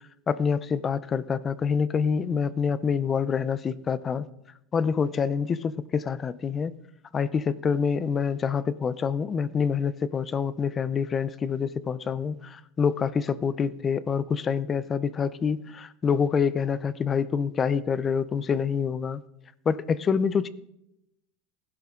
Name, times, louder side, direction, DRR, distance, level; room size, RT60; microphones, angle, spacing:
voice 1, 0.3-4.2 4.7-6.7 7.1-19.2 19.7-20.5, left 6 dB, 15° left, 0.4 m, -26 dB
20.0 x 11.5 x 3.6 m
supercardioid pair, 175°, 0 cm